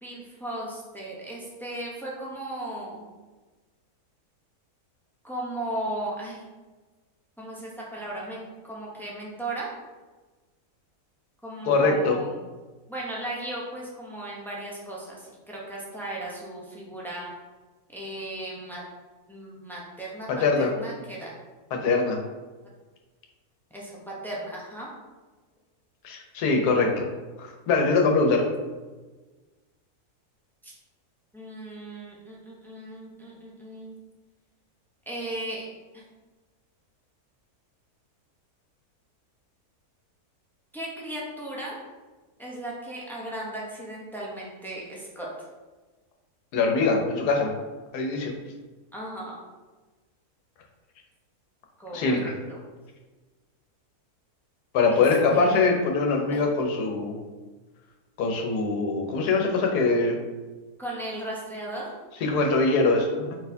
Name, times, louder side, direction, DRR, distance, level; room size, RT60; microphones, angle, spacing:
voice 1, 0.0-3.1 5.2-6.4 7.4-9.7 11.4-12.5 12.9-17.3 17.9-18.8 19.3-20.3 20.6-21.3 23.7-24.9 30.6-30.7 31.3-34.0 35.1-35.7 35.9-36.0 40.7-41.8 42.4-45.5 48.9-49.4 51.8-52.6 54.9-55.0 55.3-55.6 56.3-56.4 60.8-61.9, right 1 dB, ahead, -4 dB, 0.5 m, -36 dB
voice 2, 11.7-12.2 20.3-20.7 21.7-22.2 26.0-27.1 27.4-28.5 46.5-47.5 47.9-48.3 51.9-52.3 54.7-57.2 58.2-60.1 62.2-63.3, left 3 dB, 85° left, 2 dB, 1.3 m, -23 dB
4.7 x 4.1 x 2.7 m, 1.3 s
omnidirectional pair, 1.6 m